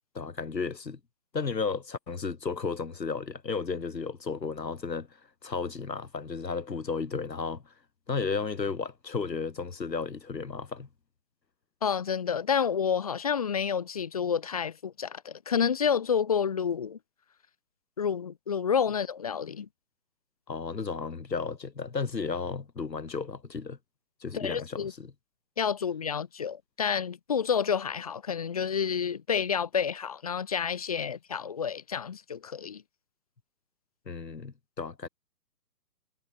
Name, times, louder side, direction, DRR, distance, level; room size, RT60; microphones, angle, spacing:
voice 1, 0.1-1.0 1.3-5.1 5.4-7.6 8.1-10.9 20.5-23.8 24.2-25.1 34.1-35.1, left 4 dB, 85° left, 4.8 m, -33 dB
voice 2, 11.8-17.0 18.0-19.7 24.3-24.9 25.6-32.8, left 7 dB, 25° left, 0.6 m, -29 dB
hypercardioid pair, 150°, 49 cm